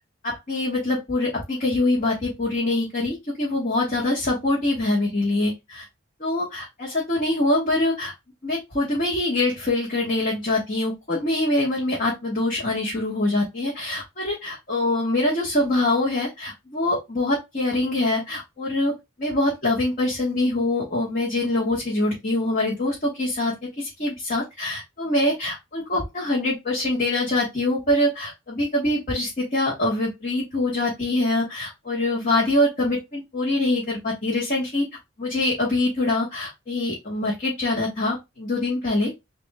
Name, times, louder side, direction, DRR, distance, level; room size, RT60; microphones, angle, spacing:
voice 1, 0.2-5.9 6.2-8.1 8.4-18.9 19.2-34.8 35.2-39.1, left 2 dB, 40° left, -4 dB, 1.4 m, -24 dB
6.9 x 2.7 x 2.3 m, 0.21 s
head